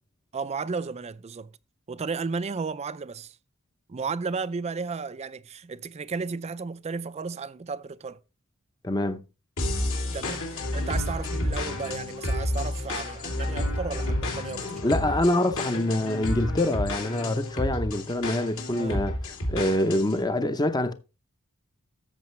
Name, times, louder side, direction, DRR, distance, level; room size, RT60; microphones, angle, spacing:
voice 1, 0.3-1.5 1.9-3.4 3.9-8.2 10.1-10.5 10.7-14.7 18.7-19.1, right 4 dB, 30° right, 0.4 m, -33 dB
voice 2, 8.8-9.2 14.8-19.2 19.5-20.9, left 1 dB, 20° left, 0.7 m, -25 dB
sound 1, 9.6-20.2, left 1 dB, 65° left, 2.9 m, -30 dB
13.5 x 6.9 x 3.2 m
head